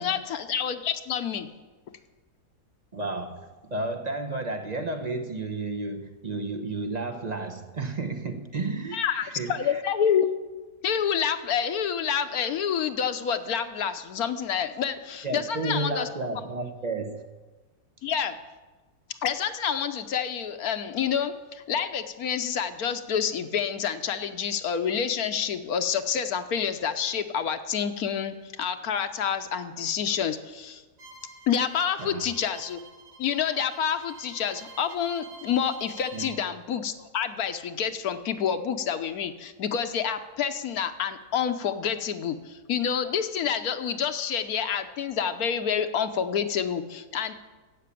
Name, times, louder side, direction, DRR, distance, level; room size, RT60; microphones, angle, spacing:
voice 1, 0.0-1.5 8.9-10.3 10.8-16.1 18.0-18.3 19.2-30.8 31.5-32.8 33.2-47.3, left 7 dB, 65° left, 9 dB, 1.3 m, -28 dB
voice 2, 2.9-9.8 15.2-17.3 32.0-32.3 36.1-36.3, right 2 dB, 30° right, 6 dB, 0.8 m, -32 dB
Bowed string instrument, 31.0-36.4, right 3 dB, 80° right, 2.4 m, -48 dB
12.5 x 8.5 x 8.4 m, 1.3 s
omnidirectional pair, 1.7 m